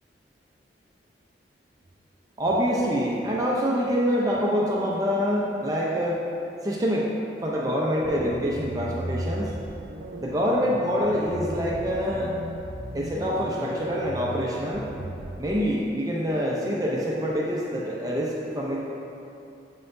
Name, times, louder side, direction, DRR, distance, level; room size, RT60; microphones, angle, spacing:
voice 1, 2.4-6.2 6.6-7.1 7.4-9.5 10.2-12.3 12.9-14.9 15.4-18.8, equal, 20° right, -4 dB, 0.5 m, -26 dB
sound 1, 8.0-15.4, right 1 dB, 75° right, 0.5 m, -36 dB
7.8 x 5.6 x 2.6 m, 2.7 s
head